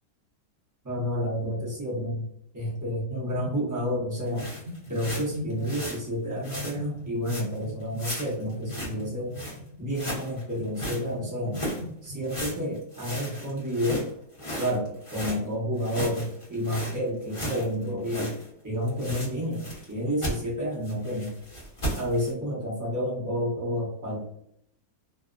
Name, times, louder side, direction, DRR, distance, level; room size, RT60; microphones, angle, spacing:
voice 1, 0.8-2.2 2.5-4.5 4.9-9.3 9.8-11.6 12.0-14.0 14.6-18.3 18.6-21.3 22.0-24.2, equal, 30° right, -5 dB, 0.3 m, -30 dB
sound 1, 3.4-4.0 4.3-6.0 6.5-12.6, left 1 dB, 65° right, 1.0 m, -41 dB
sound 2, 4.3-6.0 6.4-6.8 7.3-7.6 8.0-9.0 9.3-9.6 9.9-11.0 11.5-11.8 12.3-15.4 15.8-18.5 18.7-19.9 20.2-20.4 20.8-22.3, equal, 30° left, 0.6 m, -35 dB
2.7 x 2.1 x 2.4 m, 0.73 s
omnidirectional pair, 1.7 m